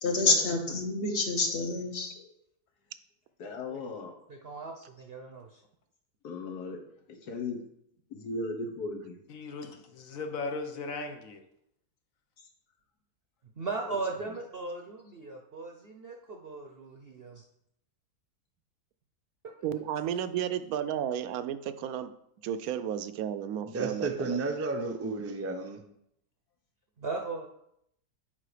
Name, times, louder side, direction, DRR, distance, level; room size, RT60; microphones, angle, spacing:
voice 1, 0.0-2.3, left 3 dB, 45° left, 3 dB, 1.4 m, -28 dB
voice 2, 3.4-4.1 6.2-6.8 7.1-7.6 8.1-9.2 12.4-12.5 13.8-13.9, left 3 dB, 85° left, 3 dB, 1.7 m, -37 dB
voice 3, 4.3-5.6 13.6-17.4 19.4-19.5 27.0-27.5, right 3 dB, 50° right, 2 dB, 0.8 m, -38 dB
voice 4, 9.3-11.4, left 3 dB, 65° left, 6 dB, 1.3 m, -37 dB
voice 5, 19.6-22.1 22.4-24.4, right 9 dB, 75° right, 12 dB, 1.0 m, -33 dB
voice 6, 23.7-25.8, right 3 dB, 20° right, 4 dB, 0.4 m, -32 dB
7.6 x 5.2 x 5.0 m, 0.76 s
omnidirectional pair, 1.6 m